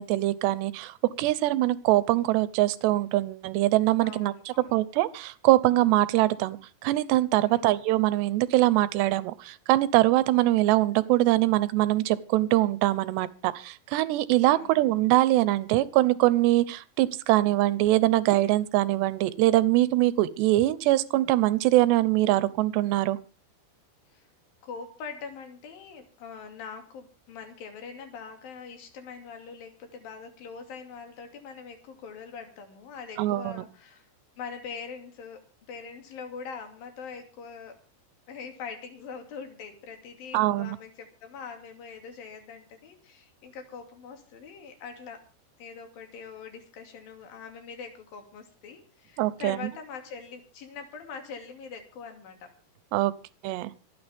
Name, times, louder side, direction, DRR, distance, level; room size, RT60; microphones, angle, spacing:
voice 1, 0.0-6.6 6.8-23.2 33.2-33.6 40.3-40.8 49.2-49.6 52.9-53.1 53.4-53.7, right 16 dB, 80° right, 16 dB, 2.9 m, -23 dB
voice 2, 4.0-4.8 7.5-7.7 14.5-14.7 24.1-24.3 24.6-34.0 34.4-37.8 38.3-45.2 45.6-52.5, left 5 dB, 55° left, 5 dB, 4.1 m, -43 dB
26.5 x 9.4 x 3.5 m, 0.34 s
omnidirectional pair, 5.1 m